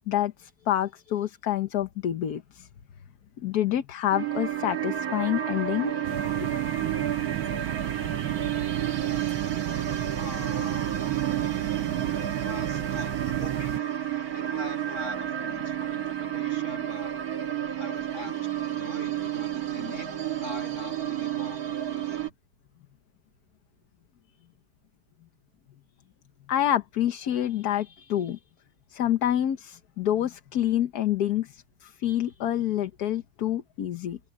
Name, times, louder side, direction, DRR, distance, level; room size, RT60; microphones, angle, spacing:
voice 1, 0.1-2.7 3.4-6.0 6.4-6.5 26.5-28.4 28.9-34.2, left 11 dB, 60° left, 1.4 m, -27 dB
sound 1, 4.1-22.3, right 10 dB, 55° right, 1.9 m, -31 dB
sound 2, 6.0-13.8, right 12 dB, 90° right, 1.6 m, -33 dB
voice 2, 10.2-10.9 12.2-13.8 14.3-17.2 17.8-20.1 20.4-22.3, left 1 dB, 40° left, 8.5 m, -43 dB
omnidirectional pair, 2.0 m